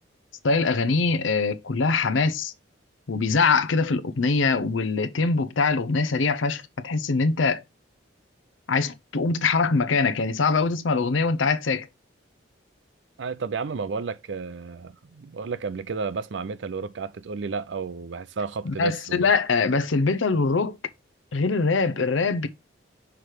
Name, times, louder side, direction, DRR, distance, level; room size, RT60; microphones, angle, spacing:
voice 1, 0.4-2.5 3.1-7.6 8.7-11.9 18.6-20.8 21.3-22.5, left 4 dB, 85° left, 0.6 m, -23 dB
voice 2, 13.2-19.3, right 5 dB, 70° right, 0.5 m, -32 dB
6.0 x 3.3 x 4.8 m
head